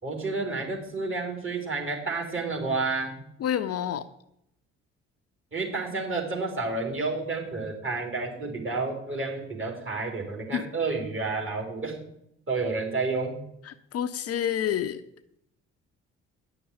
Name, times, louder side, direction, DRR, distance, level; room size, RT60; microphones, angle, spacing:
voice 1, 0.0-3.2 5.5-11.9 12.5-13.4, right 3 dB, 35° right, 2 dB, 4.2 m, -30 dB
voice 2, 3.4-4.0 10.5-10.7 13.6-15.0, left 9 dB, 45° left, 11 dB, 0.7 m, -28 dB
10.0 x 6.9 x 9.0 m, 0.76 s
figure-of-eight pair, 45°, 35 cm